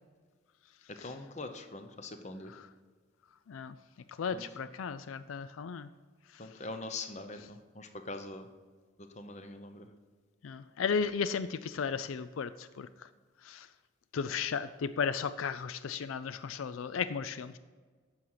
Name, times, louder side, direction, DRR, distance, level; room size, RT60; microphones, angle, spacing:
voice 1, 0.9-2.5 4.3-4.4 6.4-8.5 9.0-9.9, left 2 dB, 35° left, 7 dB, 0.8 m, -43 dB
voice 2, 4.2-5.9 10.4-12.9 13.4-13.7 14.1-17.6, left 6 dB, 85° left, 13 dB, 0.4 m, -35 dB
10.5 x 6.4 x 5.7 m, 1.5 s
head